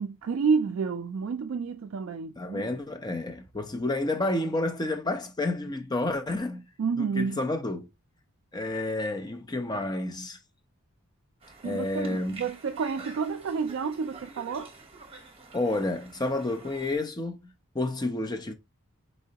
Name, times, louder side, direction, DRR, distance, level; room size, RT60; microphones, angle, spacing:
voice 1, 0.0-2.7 6.8-7.5 11.6-14.7, right 5 dB, 60° right, 0.3 m, -29 dB
voice 2, 2.4-6.6 7.0-7.9 8.5-10.4 11.6-12.4 15.5-17.5 17.7-18.5, left 2 dB, 20° left, 0.5 m, -30 dB
Conversation, 11.4-17.0, right 3 dB, 25° right, 0.9 m, -48 dB
4.2 x 3.7 x 2.8 m
head